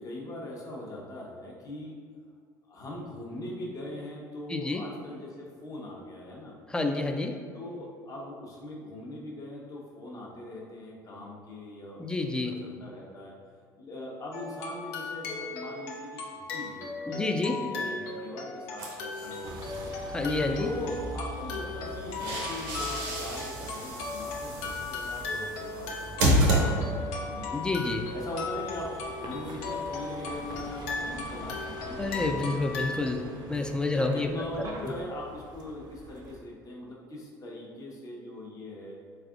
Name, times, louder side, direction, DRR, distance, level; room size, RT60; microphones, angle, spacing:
voice 1, 0.0-2.0 2.7-6.5 7.5-13.3 13.8-19.9 20.6-27.7 28.1-32.7 34.0-39.0, left 1 dB, 40° left, -3 dB, 0.9 m, -41 dB
voice 2, 4.5-4.8 6.7-7.4 12.0-12.5 17.1-17.6 20.1-20.7 27.5-28.0 32.0-33.2 33.5-34.3, left 2 dB, 10° left, 4 dB, 0.3 m, -29 dB
sound 1, 14.3-33.1, left 4 dB, 70° left, 0.6 m, -37 dB
sound 2, 18.8-19.9 21.8-27.2, right 1 dB, 80° right, 0.7 m, -30 dB
Vehicle, 19.4-36.4, right 1 dB, 45° right, 0.5 m, -44 dB
3.4 x 3.3 x 2.4 m, 2.1 s
hypercardioid pair, 75°, 9 cm